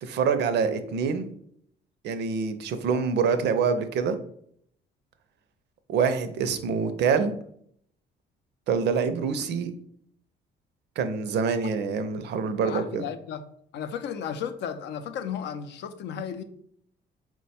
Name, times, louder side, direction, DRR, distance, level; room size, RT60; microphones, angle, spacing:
voice 1, 0.0-1.3 2.0-4.2 5.9-7.3 8.7-9.7 11.0-13.0, right 6 dB, 70° right, 10 dB, 0.5 m, -25 dB
voice 2, 12.6-13.4 13.7-16.4, left 8 dB, 70° left, 10 dB, 0.5 m, -34 dB
4.5 x 2.2 x 4.1 m, 0.67 s
cardioid pair, 115°, 19 cm